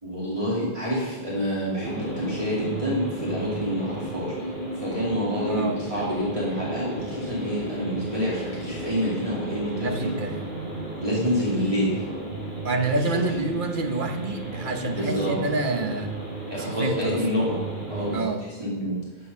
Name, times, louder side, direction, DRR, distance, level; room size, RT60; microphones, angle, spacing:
voice 1, 0.0-4.3 4.7-10.1 11.0-12.0 14.9-15.3 16.5-17.6 17.9-19.0, equal, 35° right, -7 dB, 2.7 m, -27 dB
sound 1, 1.8-18.2, right 1 dB, 85° right, 5.0 m, -34 dB
voice 2, 5.5-5.8 9.8-10.4 12.6-16.1 16.5-17.2 18.1-18.4, right 3 dB, 55° right, 5 dB, 1.3 m, -27 dB
14.0 x 8.6 x 5.5 m, 1.2 s
omnidirectional pair, 1.0 m